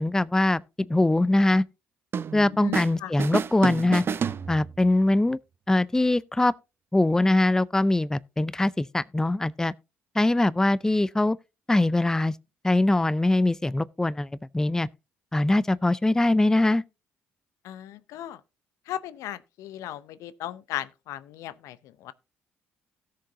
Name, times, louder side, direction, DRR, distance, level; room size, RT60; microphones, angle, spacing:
voice 1, 0.0-1.6 2.3-4.0 4.5-5.4 5.7-6.5 6.9-9.7 10.1-11.4 11.7-12.4 12.6-14.9 15.3-16.8, left 2 dB, 10° left, 0.4 m, -22 dB
sound 1, 2.1-2.9 3.2-5.0, right 7 dB, 45° right, 0.6 m, -30 dB
voice 2, 2.6-3.1 17.6-18.4 18.9-22.1, left 12 dB, 70° left, 0.6 m, -36 dB
17.0 x 6.6 x 2.7 m
hypercardioid pair, 50°, 6 cm